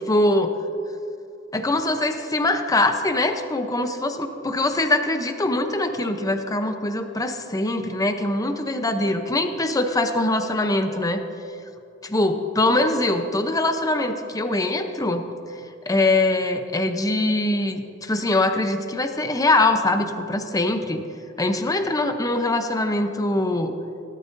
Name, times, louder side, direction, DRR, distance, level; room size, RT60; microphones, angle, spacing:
voice 1, 0.1-0.5 1.5-11.2 12.0-15.2 15.9-21.0 21.4-23.7, left 2 dB, 15° left, 6 dB, 0.7 m, -23 dB
18.0 x 12.5 x 2.7 m, 2.7 s
head